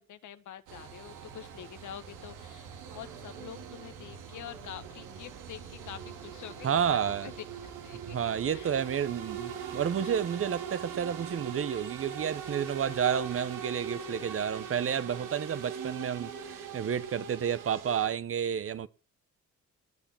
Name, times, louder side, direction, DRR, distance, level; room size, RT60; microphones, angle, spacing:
voice 1, 0.0-7.3 7.8-8.7 10.0-10.2, left 10 dB, 75° left, 1.6 m, -46 dB
sound 1, 0.7-18.1, right 7 dB, 90° right, 3.0 m, -42 dB
voice 2, 6.6-7.3 8.1-18.9, right 8 dB, 45° right, 1.0 m, -30 dB
19.5 x 7.1 x 7.4 m
cardioid pair, 90°, 30 cm